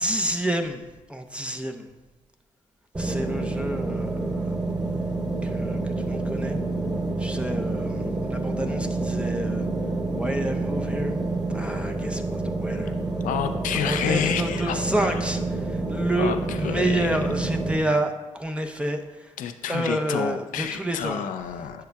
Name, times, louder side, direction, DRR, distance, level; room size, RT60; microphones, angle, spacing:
voice 1, 0.0-1.9 3.0-4.6 5.4-6.6 7.2-9.7 10.1-11.1 11.5-12.9 13.7-19.3 19.7-21.3, right 1 dB, 10° right, 4 dB, 0.7 m, -29 dB
sound 1, 2.9-17.8, right 2 dB, 35° right, 2.2 m, -28 dB
voice 2, 13.2-15.2 16.2-17.1 19.4-21.8, left 9 dB, 75° left, 8 dB, 0.5 m, -29 dB
10.5 x 6.6 x 2.3 m, 1.1 s
cardioid pair, 70°, 13 cm